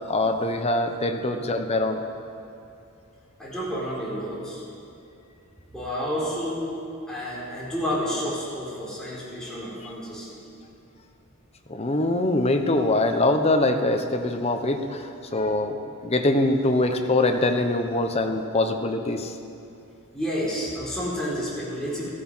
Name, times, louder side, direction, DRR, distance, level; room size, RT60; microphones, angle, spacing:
voice 1, 0.1-2.0 11.7-15.8 16.0-19.3, left 2 dB, 30° left, 5 dB, 1.0 m, -23 dB
voice 2, 3.4-4.6 5.7-6.6 7.1-10.4 20.1-22.1, equal, 5° left, -8 dB, 4.2 m, -30 dB
15.0 x 14.0 x 5.6 m, 2.7 s
head